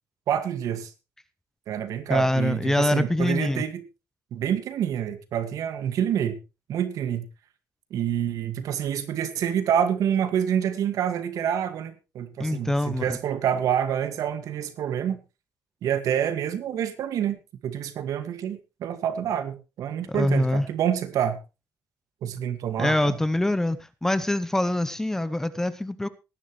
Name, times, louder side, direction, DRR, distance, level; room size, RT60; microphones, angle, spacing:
voice 1, 0.3-0.9 1.7-3.8 4.3-6.4 6.7-7.3 7.9-15.2 15.8-21.4 22.2-23.2, right 9 dB, 70° right, 2.0 m, -27 dB
voice 2, 2.1-3.6 12.4-13.2 20.1-20.6 22.8-26.1, left 1 dB, 5° left, 0.7 m, -24 dB
18.5 x 11.0 x 3.2 m
cardioid pair, 160°, 6 cm